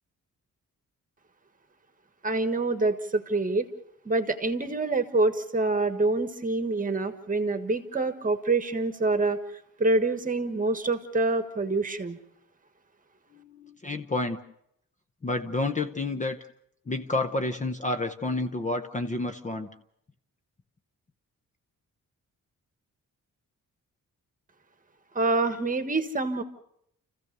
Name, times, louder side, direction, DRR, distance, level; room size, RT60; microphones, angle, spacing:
voice 1, 2.2-3.7 4.0-9.4 9.8-12.2 25.1-26.4, right 3 dB, 25° right, 9 dB, 1.5 m, -26 dB
voice 2, 13.3-14.4 15.2-16.4 16.9-19.7, left 2 dB, 25° left, 8 dB, 0.7 m, -30 dB
29.5 x 15.0 x 6.7 m, 0.74 s
wide cardioid pair, 175°, 32 cm